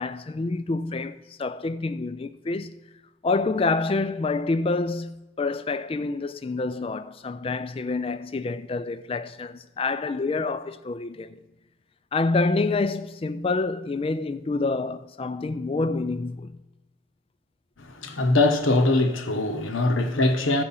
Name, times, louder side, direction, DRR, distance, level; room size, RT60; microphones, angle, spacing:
voice 1, 0.0-2.8 3.2-11.4 12.1-16.6, left 3 dB, 25° left, 0.3 m, -27 dB
voice 2, 18.0-20.6, left 2 dB, 75° left, 1.0 m, -22 dB
14.5 x 4.9 x 5.6 m
head